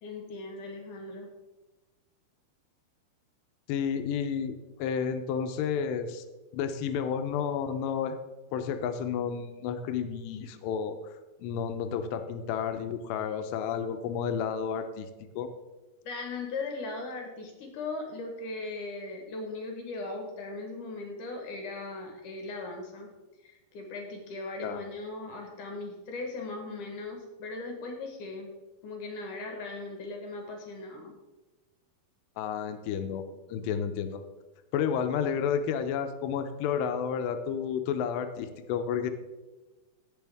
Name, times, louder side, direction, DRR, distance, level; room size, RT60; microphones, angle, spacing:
voice 1, 0.0-1.3 16.0-23.1 23.4-28.5 28.8-31.1, left 3 dB, 60° left, 2 dB, 2.4 m, -38 dB
voice 2, 3.7-6.2 6.5-8.2 8.5-11.0 11.4-15.1 15.4-15.5 24.6-24.8 32.4-33.2 33.5-34.2 34.7-39.1, left 7 dB, 85° left, 8 dB, 2.9 m, -31 dB
17.5 x 6.3 x 3.5 m, 1.1 s
omnidirectional pair, 4.8 m